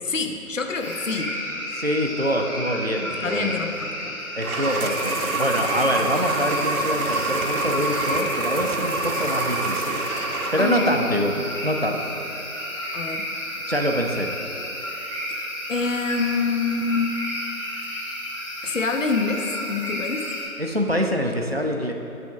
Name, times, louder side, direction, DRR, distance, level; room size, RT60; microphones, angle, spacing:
voice 1, 0.0-1.4 3.1-4.2 10.6-11.0 12.9-13.3 15.3-15.4 15.7-17.2 18.6-20.3, left 4 dB, 60° left, 5 dB, 0.6 m, -26 dB
sound 1, 0.8-20.4, equal, 20° left, 1.6 m, -32 dB
voice 2, 1.7-3.6 4.3-10.0 10.5-12.1 13.7-14.3 20.6-21.9, equal, 45° right, 2 dB, 0.5 m, -25 dB
sound 2, 4.4-11.0, right 3 dB, 75° right, 0.8 m, -27 dB
8.3 x 3.5 x 5.6 m, 3.0 s
figure-of-eight pair, 175°, 44 cm